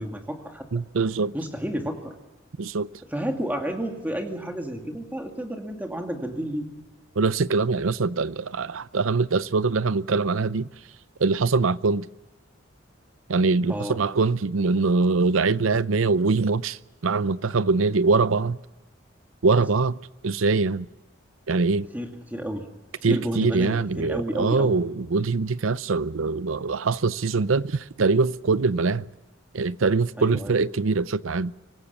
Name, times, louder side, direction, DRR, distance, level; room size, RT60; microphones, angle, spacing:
voice 1, 0.0-0.7 1.3-2.1 3.1-6.7 13.7-14.0 21.9-22.7 23.0-24.8 30.2-30.6, equal, 10° right, 2.3 m, -31 dB
voice 2, 0.7-1.3 2.6-2.9 7.2-10.7 11.2-12.1 13.3-16.8 17.0-18.6 19.4-20.0 20.2-20.9 21.5-21.9 23.0-29.1 29.5-31.5, right 4 dB, 75° right, 0.6 m, -23 dB
25.0 x 18.5 x 7.0 m
head